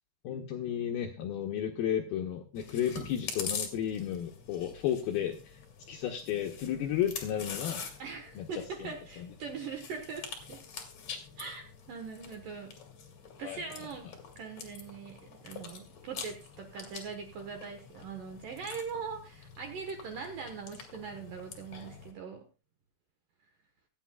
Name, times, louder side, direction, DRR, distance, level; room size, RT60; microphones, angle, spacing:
voice 1, 0.2-5.6 5.9-7.8 8.4-8.9 9.2-9.3 13.4-13.9, left 10 dB, 80° left, 3 dB, 2.2 m, -33 dB
Chewing mastication, 2.6-22.1, left 6 dB, 50° left, 2.2 m, -45 dB
voice 2, 8.0-10.6 11.4-12.8 13.4-14.1 14.4-22.4, right 5 dB, 70° right, 5 dB, 2.2 m, -41 dB
24.5 x 8.7 x 2.2 m, 0.31 s
omnidirectional pair, 5.4 m